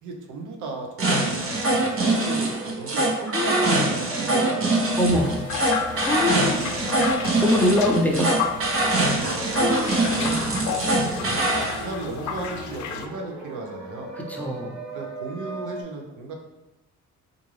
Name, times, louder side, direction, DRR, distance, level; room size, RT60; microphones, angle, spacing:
voice 1, 0.0-4.9 9.0-9.4 10.1-10.4 11.7-14.2 14.9-16.3, right 3 dB, 80° right, 2 dB, 0.7 m, -36 dB
sound 1, 1.0-11.8, right 2 dB, 45° right, 0.7 m, -23 dB
sound 2, 2.0-15.8, right 2 dB, 60° right, 1.5 m, -38 dB
voice 2, 3.3-3.9 5.0-5.4 5.9-6.7 7.4-8.7 9.5-10.7 14.1-14.8, left 1 dB, 5° left, -1 dB, 0.5 m, -24 dB
sound 3, 5.1-13.1, left 7 dB, 70° left, 0.4 m, -32 dB
3.7 x 2.5 x 3.2 m, 0.99 s
cardioid pair, 90°, 30 cm